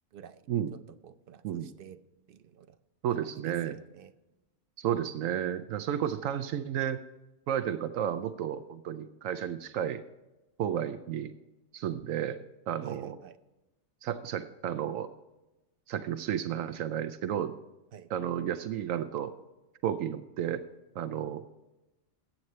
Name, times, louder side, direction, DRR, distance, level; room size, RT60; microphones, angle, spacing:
voice 1, 0.1-2.0 2.3-2.8 3.1-3.2 3.4-4.1 12.8-13.4 17.9-18.1, right 9 dB, 55° right, 12 dB, 0.7 m, -49 dB
voice 2, 3.0-3.7 4.8-7.0 7.5-10.0 10.6-11.3 11.7-12.4 12.7-13.2 14.0-15.1 15.9-17.5 18.1-19.3 19.8-20.6 21.0-21.4, right 10 dB, 80° right, 11 dB, 1.0 m, -32 dB
14.5 x 9.0 x 3.2 m, 1.0 s
omnidirectional pair, 1.4 m